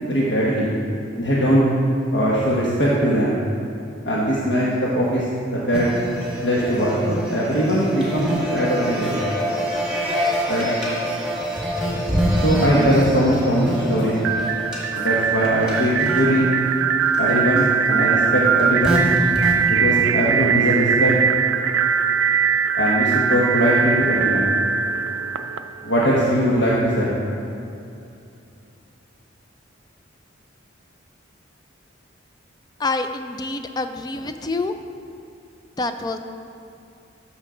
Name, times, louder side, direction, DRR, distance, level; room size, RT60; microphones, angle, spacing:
voice 1, 0.0-0.7 1.2-1.6 2.1-3.4 4.0-5.2 5.5-5.9 6.4-9.2 10.5-10.7 12.4-14.2 15.0-16.5 17.2-19.0 19.7-21.2 22.8-24.5 25.8-27.1, equal, 60° left, -6 dB, 1.3 m, -20 dB
sound 1, 5.7-19.7, equal, 5° right, 1.8 m, -26 dB
sound 2, 14.2-26.0, right 7 dB, 75° right, 0.4 m, -21 dB
voice 2, 32.8-34.7 35.8-36.2, left 3 dB, 20° left, 8 dB, 0.4 m, -26 dB
13.5 x 6.5 x 3.8 m, 2.6 s
head